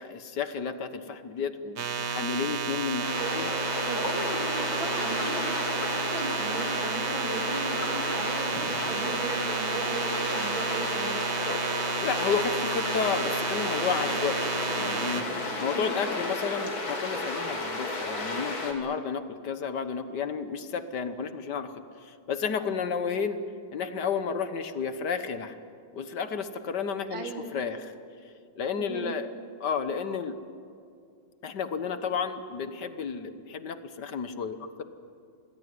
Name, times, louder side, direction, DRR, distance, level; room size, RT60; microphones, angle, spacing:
voice 1, 0.0-3.1 3.3-3.5 12.0-15.3 15.6-23.4 23.7-25.6 25.9-27.9 28.6-29.3 29.6-30.4 31.4-34.8, left 6 dB, 60° left, 10 dB, 1.7 m, -32 dB
sound 1, 1.8-15.2, right 6 dB, 60° right, 2.0 m, -32 dB
sound 2, 3.0-18.7, left 2 dB, 85° left, 4.0 m, -32 dB
voice 2, 3.8-11.2 15.5-16.0 27.1-27.5 28.8-29.2, right 2 dB, 75° right, 3 dB, 3.7 m, -37 dB
26.5 x 20.0 x 9.6 m, 2.4 s
omnidirectional pair, 2.1 m